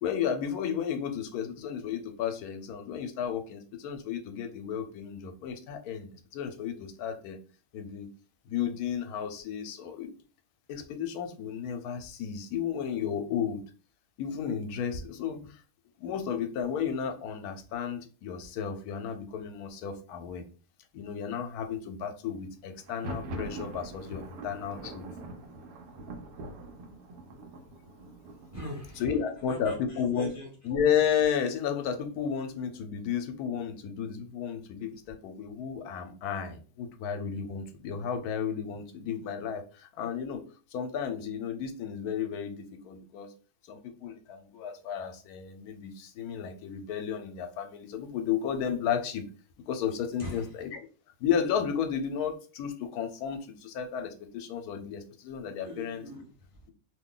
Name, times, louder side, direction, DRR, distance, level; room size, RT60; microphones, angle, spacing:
voice 1, 0.0-7.4 7.7-8.1 8.5-10.1 10.7-13.6 14.2-15.6 16.0-20.4 20.9-25.0 29.0-30.3 30.6-40.4 40.7-42.6 42.8-43.3 43.7-49.2 49.7-50.8 51.2-56.0, left 8 dB, 85° left, 6 dB, 1.1 m, -33 dB
Thunder, 22.8-30.5, right 1 dB, 85° right, 1.1 m, -43 dB
voice 2, 28.5-29.1 29.4-30.5 50.2-50.5 55.6-56.6, equal, 15° right, -2 dB, 0.7 m, -42 dB
2.7 x 2.2 x 3.7 m, 0.38 s
omnidirectional pair, 1.6 m